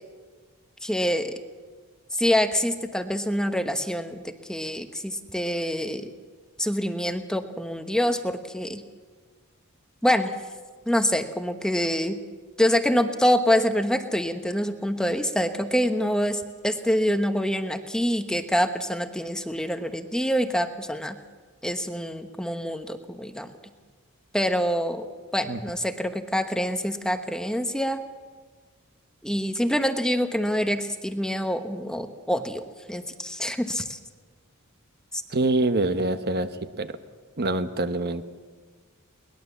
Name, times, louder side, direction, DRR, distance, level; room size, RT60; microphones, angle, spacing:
voice 1, 0.8-1.3 2.2-6.1 6.6-8.8 10.0-10.3 10.9-12.2 12.6-21.2 21.6-23.5 24.3-25.1 25.3-28.0 29.2-34.0 35.1-35.2, equal, 5° left, 7 dB, 1.0 m, -26 dB
voice 2, 35.3-36.5 36.8-37.0 37.4-38.2, right 2 dB, 50° right, 9 dB, 1.1 m, -25 dB
22.5 x 20.0 x 7.2 m, 1.4 s
head